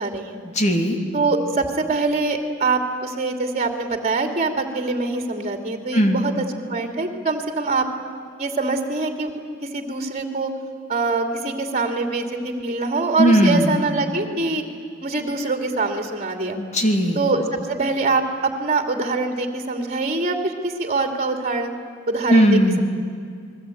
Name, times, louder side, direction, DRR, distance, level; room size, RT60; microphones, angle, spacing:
voice 1, 0.0-0.4 1.1-6.4 6.7-7.9 8.4-9.3 9.6-10.5 10.9-14.6 15.0-16.6 17.2-21.7 22.1-22.8, right 3 dB, 30° right, 5 dB, 2.6 m, -24 dB
voice 2, 0.5-1.0 5.9-6.2 13.2-13.8 16.6-17.2 22.3-22.8, equal, 35° left, 4 dB, 3.0 m, -17 dB
28.5 x 21.5 x 9.2 m, 2.2 s
head